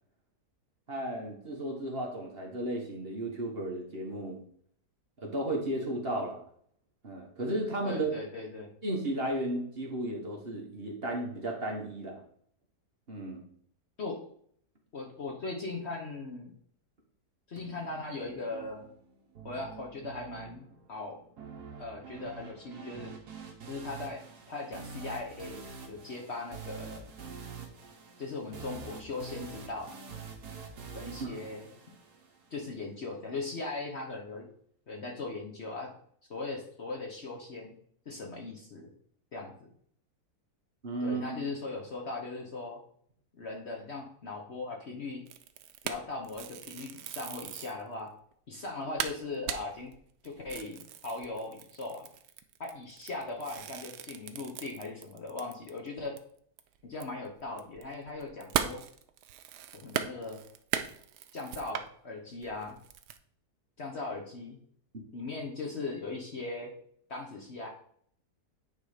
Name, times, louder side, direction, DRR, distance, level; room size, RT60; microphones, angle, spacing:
voice 1, 0.9-4.4 5.2-6.4 7.0-8.1 8.8-12.2 13.1-13.4 31.2-31.4 40.8-41.4, right 1 dB, 40° right, 0 dB, 1.5 m, -34 dB
voice 2, 7.8-8.7 14.0-14.2 14.9-16.5 17.5-18.9 19.4-21.2 21.8-23.1 23.7-24.2 24.5-27.1 28.2-30.0 30.9-31.7 32.5-34.5 34.9-35.9 36.3-37.7 38.1-38.9 39.3-39.7 41.0-42.8 43.3-45.2 45.8-48.1 48.5-49.9 50.2-52.1 52.6-56.2 56.8-58.8 59.7-60.4 61.3-62.8 63.8-64.6 65.1-66.7 67.1-67.7, left 3 dB, 45° left, 1 dB, 1.1 m, -39 dB
sound 1, 17.6-32.6, right 5 dB, 70° right, 1.8 m, -46 dB
sound 2, 45.3-47.8 48.3-48.4 48.7-48.8 49.0-55.9 56.2-56.3 56.6-61.9 62.4-63.2, right 10 dB, 85° right, 1.2 m, -38 dB
9.2 x 3.7 x 5.0 m, 0.63 s
omnidirectional pair, 1.8 m